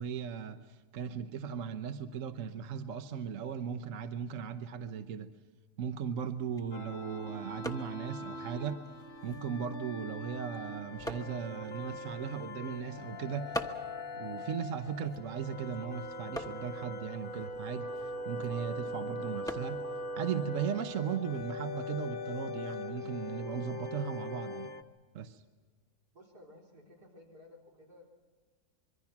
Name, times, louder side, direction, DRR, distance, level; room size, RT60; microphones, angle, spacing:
voice 1, 0.0-5.3 5.8-8.9 9.2-13.7 14.1-19.9 20.2-24.7 25.1-25.4, right 7 dB, 60° right, 9 dB, 1.2 m, -37 dB
sound 1, 6.1-21.6, equal, 5° left, 0.8 m, -48 dB
sound 2, 6.7-24.8, left 1 dB, 40° left, 1.0 m, -41 dB
voice 2, 26.1-28.1, left 1 dB, 85° right, -1 dB, 4.4 m, -55 dB
25.0 x 23.5 x 5.9 m, 1.4 s
omnidirectional pair, 1.7 m